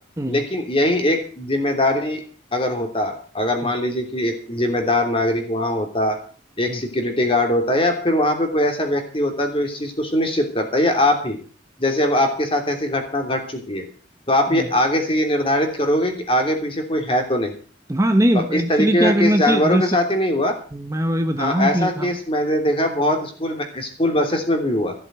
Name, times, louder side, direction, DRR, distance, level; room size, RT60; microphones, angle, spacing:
voice 1, 0.3-2.2 2.5-6.2 6.6-11.4 11.8-13.8 14.3-17.5 18.3-20.6 21.4-24.9, left 1 dB, 30° left, 3.0 m, -21 dB
voice 2, 17.9-19.9 20.7-22.1, right 1 dB, 15° right, 0.8 m, -20 dB
15.0 x 7.8 x 8.0 m
head